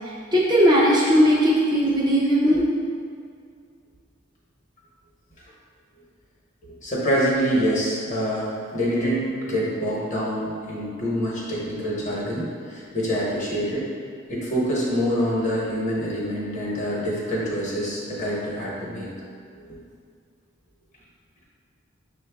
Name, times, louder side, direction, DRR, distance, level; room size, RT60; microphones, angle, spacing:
voice 1, 0.3-2.6, equal, 20° right, -6 dB, 0.5 m, -18 dB
voice 2, 6.8-13.8 14.3-19.1, equal, 35° left, -6 dB, 1.0 m, -26 dB
6.2 x 2.3 x 3.4 m, 2.3 s
head